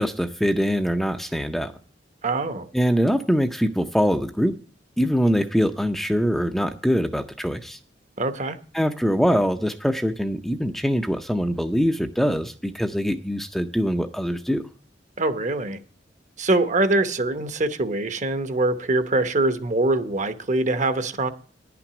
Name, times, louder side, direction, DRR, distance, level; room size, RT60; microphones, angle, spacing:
voice 1, 0.0-1.7 2.7-4.5 5.0-7.8 8.7-14.6, equal, ahead, 6 dB, 0.5 m, -23 dB
voice 2, 2.2-2.7 8.2-8.6 15.2-15.8 16.4-21.3, right 2 dB, 40° right, 10 dB, 0.9 m, -23 dB
10.5 x 6.0 x 7.8 m, 0.42 s
head